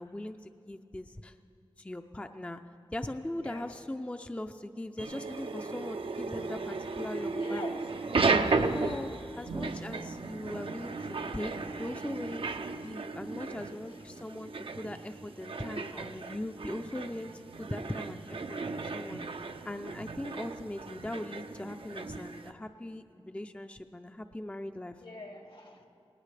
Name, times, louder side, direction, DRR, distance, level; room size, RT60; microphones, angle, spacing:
voice 1, 0.0-1.3 1.8-2.6 2.9-7.7 8.7-25.0, left 1 dB, 15° left, 7 dB, 0.5 m, -40 dB
sound 1, 5.0-22.5, right 3 dB, 70° right, 0.6 m, -35 dB
voice 2, 7.2-7.8 13.4-14.0 25.0-25.9, left 2 dB, 70° left, 3 dB, 1.7 m, -45 dB
19.0 x 18.5 x 3.3 m, 2.6 s
wide cardioid pair, 55°, 10 cm